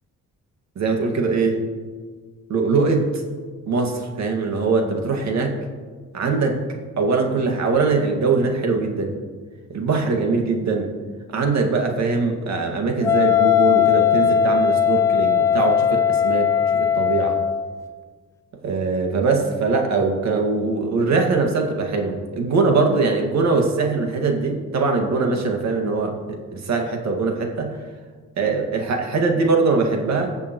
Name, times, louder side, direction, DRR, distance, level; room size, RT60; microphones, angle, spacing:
voice 1, 0.8-1.6 2.5-3.1 3.7-5.6 6.1-6.6 7.0-9.1 9.7-10.9 11.3-17.3 18.6-26.2 26.5-27.8 28.4-30.3, right 4 dB, 65° right, 2 dB, 2.0 m, -22 dB
Wind instrument woodwind instrument, 13.0-17.7, left 9 dB, 10° left, 0.5 m, -18 dB
21.0 x 7.1 x 3.1 m, 1.5 s
cardioid pair, 90°, 30 cm